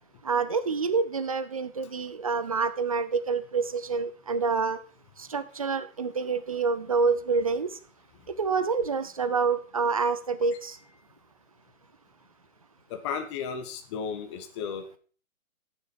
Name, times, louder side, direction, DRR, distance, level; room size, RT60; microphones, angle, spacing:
voice 1, 0.2-4.8 5.3-7.7 8.4-10.8, right 5 dB, 25° right, 13 dB, 0.4 m, -27 dB
voice 2, 12.9-15.0, left 6 dB, 20° left, 6 dB, 0.7 m, -34 dB
9.2 x 7.2 x 4.8 m, 0.40 s
hypercardioid pair, 145°, 42 cm